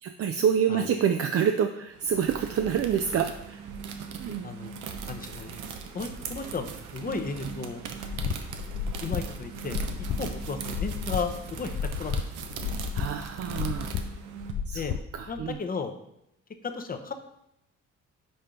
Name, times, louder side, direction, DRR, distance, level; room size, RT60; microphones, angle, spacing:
voice 1, 0.0-3.6 4.2-4.5 12.9-13.9 14.7-14.8 15.1-15.6, right 8 dB, 50° right, 6 dB, 0.5 m, -27 dB
sound 1, 1.9-14.5, right 6 dB, 85° right, 0.8 m, -39 dB
voice 2, 5.1-5.6 5.9-7.8 8.2-8.3 9.0-9.8 10.2-12.1 14.7-14.9 15.3-15.9 16.6-17.1, left 4 dB, 30° left, 7 dB, 0.8 m, -34 dB
sound 2, 8.1-15.5, left 8 dB, 55° left, 0.5 m, -33 dB
5.5 x 4.3 x 5.1 m, 0.82 s
cardioid pair, 90°, 30 cm